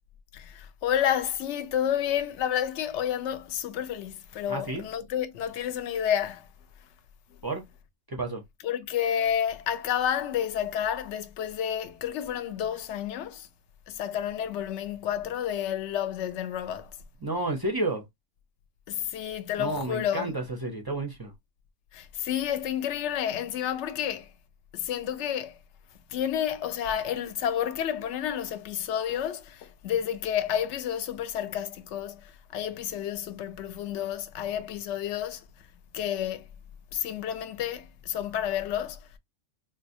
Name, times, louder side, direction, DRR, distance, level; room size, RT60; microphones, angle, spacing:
voice 1, 0.3-6.5 8.6-13.5 13.9-17.0 18.9-20.3 21.9-24.3 24.7-25.6 26.1-35.5 35.9-36.5 36.9-39.1, left 9 dB, 70° left, 0.8 m, -30 dB
voice 2, 4.5-4.8 7.4-7.6 8.1-8.4 17.2-18.0 19.6-21.3, right 2 dB, 30° right, 0.4 m, -31 dB
4.0 x 2.2 x 2.6 m
omnidirectional pair, 1.4 m